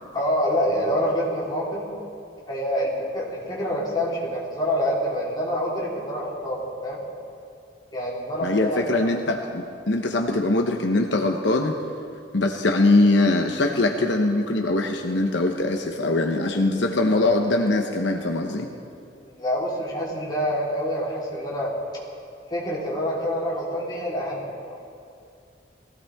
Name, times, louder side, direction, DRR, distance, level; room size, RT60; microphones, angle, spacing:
voice 1, 0.1-1.8 2.5-7.0 7.9-9.1 19.2-21.7 22.5-24.8, equal, 25° left, -6 dB, 3.8 m, -26 dB
voice 2, 8.4-11.8 12.3-18.7, left 2 dB, 75° left, 3 dB, 1.0 m, -22 dB
21.5 x 16.5 x 3.6 m, 2.5 s
head